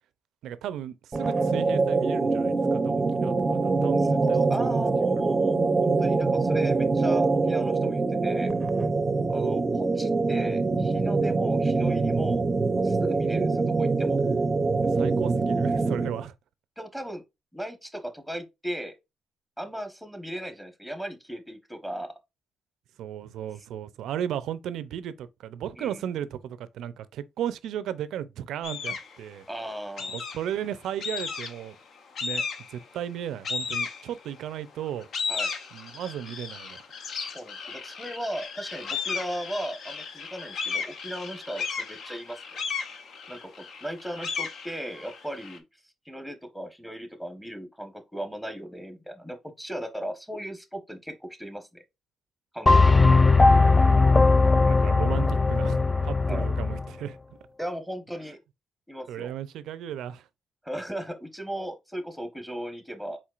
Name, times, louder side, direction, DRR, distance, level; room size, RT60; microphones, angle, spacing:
voice 1, 0.4-4.8 5.2-5.3 14.8-16.3 23.0-29.5 30.3-31.8 32.2-35.1 35.7-36.8 54.6-57.2 59.1-60.2, right 10 dB, 80° right, 0.4 m, -35 dB
sound 1, 1.1-16.2, right 3 dB, 30° right, 0.5 m, -24 dB
voice 2, 4.2-8.5 9.3-12.4 12.8-14.2 16.8-17.2 17.5-18.9 19.6-22.1 25.8-26.0 29.5-30.2 35.3-35.5 37.3-42.6 43.3-43.5 43.8-45.6 46.0-51.8 52.5-53.3 56.2-56.5 57.6-58.4 58.9-59.3 60.6-63.2, equal, 5° left, 1.0 m, -37 dB
sound 2, 28.6-29.2 30.0-30.6 31.0-31.7 32.2-32.8 33.4-34.4 34.9-45.6, left 5 dB, 60° left, 0.8 m, -34 dB
sound 3, 52.7-56.9, left 3 dB, 20° left, 0.3 m, -19 dB
4.4 x 4.3 x 2.4 m
cardioid pair, 90°, 0 cm